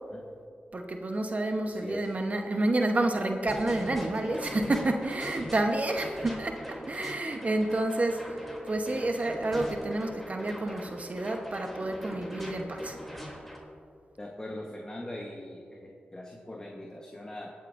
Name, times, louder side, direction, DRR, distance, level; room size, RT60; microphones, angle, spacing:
voice 1, 0.7-8.2 8.7-13.0, right 2 dB, 45° right, 4 dB, 1.0 m, -29 dB
voice 2, 1.6-2.1 6.0-6.2 14.2-17.5, left 1 dB, 25° left, 0 dB, 1.2 m, -41 dB
sound 1, 3.5-13.6, equal, 5° left, 3.0 m, -42 dB
22.0 x 8.2 x 2.6 m, 2.4 s
cardioid pair, 55°, 4 cm